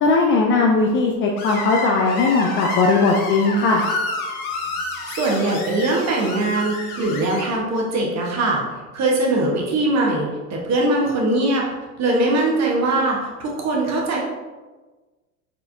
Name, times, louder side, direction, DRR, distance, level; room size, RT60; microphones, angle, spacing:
voice 1, 0.0-3.8, left 3 dB, 30° left, 0 dB, 0.4 m, -18 dB
Screech, 1.4-7.4, left 3 dB, 65° left, 1.0 m, -29 dB
voice 2, 5.1-8.6 8.9-11.7 12.0-14.2, right 2 dB, 35° right, -2 dB, 1.3 m, -21 dB
4.6 x 4.0 x 2.7 m, 1.3 s
hypercardioid pair, 80°, 47 cm